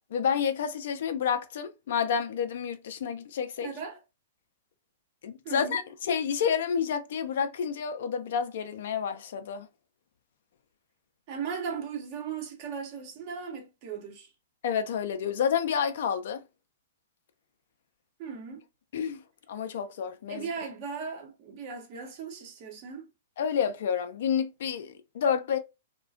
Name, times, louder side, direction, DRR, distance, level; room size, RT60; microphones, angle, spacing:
voice 1, 0.1-3.7 5.2-9.7 14.6-16.4 18.9-19.2 19.5-20.5 23.4-25.6, left 7 dB, 65° left, 0.4 m, -29 dB
voice 2, 3.6-4.0 5.4-5.8 11.3-14.3 18.2-18.6 20.3-23.1, right 6 dB, 45° right, 0.8 m, -37 dB
2.3 x 2.2 x 2.4 m
hypercardioid pair, 115°, 0 cm